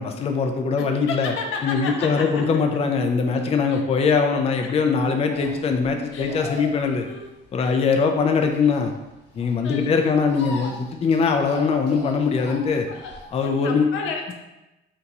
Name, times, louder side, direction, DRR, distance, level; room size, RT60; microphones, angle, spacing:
voice 1, 0.0-1.3 1.6-7.1 7.5-8.9 9.4-12.9 13.3-13.9, left 5 dB, 30° left, 4 dB, 0.4 m, -22 dB
voice 2, 0.8-2.4 3.3-3.4 3.7-3.8 4.6-4.7 6.1-6.3 7.0-7.3 7.6-7.8 9.6-10.3 12.9-13.1 13.4-14.3, left 5 dB, 85° left, 2 dB, 0.6 m, -32 dB
sound 1, 5.3-13.4, left 2 dB, 60° left, 1.0 m, -39 dB
2.8 x 2.3 x 4.0 m, 1.0 s
cardioid pair, 90°, 20 cm